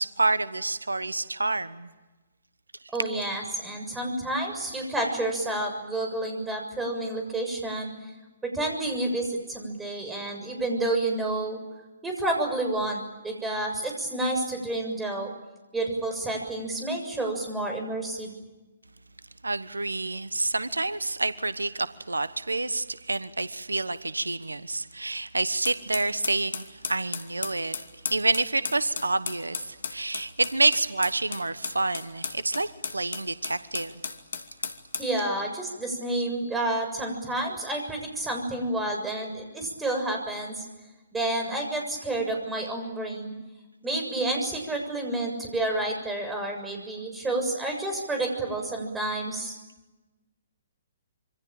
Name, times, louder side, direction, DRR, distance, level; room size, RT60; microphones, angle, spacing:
voice 1, 0.0-1.9 19.4-27.8 28.1-34.0, right 2 dB, 85° right, 14 dB, 1.1 m, -28 dB
voice 2, 2.9-7.9 8.5-11.6 12.0-15.3 15.7-18.4 35.0-40.7 41.1-43.3 43.8-49.6, right 2 dB, 10° right, 3 dB, 7.0 m, -29 dB
sound 1, 25.6-35.1, left 5 dB, 70° left, 2.5 m, -35 dB
27.0 x 25.0 x 8.9 m, 1.1 s
figure-of-eight pair, 130°, 0 cm